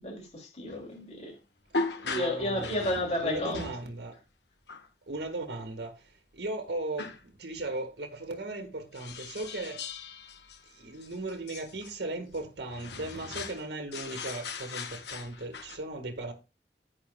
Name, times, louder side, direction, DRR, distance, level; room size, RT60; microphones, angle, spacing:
voice 1, 0.0-1.3 2.1-3.7, left 1 dB, 35° left, 2.6 m, -32 dB
sound 1, 0.7-0.8 1.7-3.9 4.7-4.9 7.0-7.2 8.9-11.9 12.3-12.4 12.7-13.7 13.9-15.8, left 3 dB, 70° left, 1.1 m, -38 dB
voice 2, 2.0-4.2 5.1-9.8 10.7-16.3, right 2 dB, 70° right, 1.7 m, -37 dB
10.5 x 8.5 x 2.3 m
head